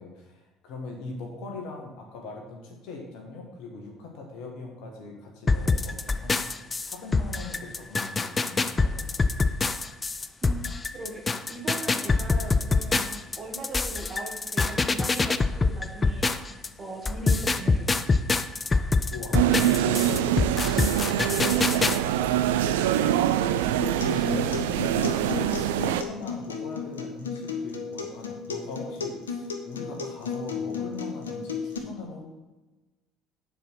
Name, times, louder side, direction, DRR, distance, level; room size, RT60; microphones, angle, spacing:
voice 1, 0.0-9.5 19.1-20.3 20.8-22.5 22.7-23.7 24.0-32.3, left 3 dB, 60° left, 1 dB, 1.7 m, -41 dB
sound 1, 5.5-16.7 17.0-22.0, left 3 dB, 25° left, 0.5 m, -25 dB
voice 2, 10.9-11.2 11.5-18.1, right 3 dB, 35° right, 0 dB, 1.9 m, -39 dB
sound 2, 19.3-26.0, right 11 dB, 70° right, 0.4 m, -24 dB
Acoustic guitar, 23.8-31.8, left 5 dB, 80° left, 0.7 m, -34 dB
9.0 x 4.8 x 5.9 m, 1.1 s
figure-of-eight pair, 55°, 0 cm